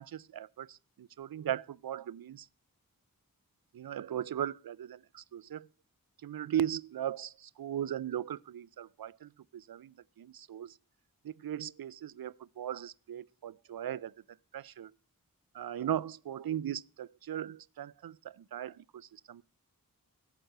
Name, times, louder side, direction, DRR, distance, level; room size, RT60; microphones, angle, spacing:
voice 1, 0.0-2.5 3.7-5.7 6.2-10.7 11.2-14.1 14.5-14.9 15.5-19.4, right 10 dB, 80° right, 0.5 m, -38 dB
12.5 x 7.9 x 6.6 m
wide cardioid pair, 55°, 35 cm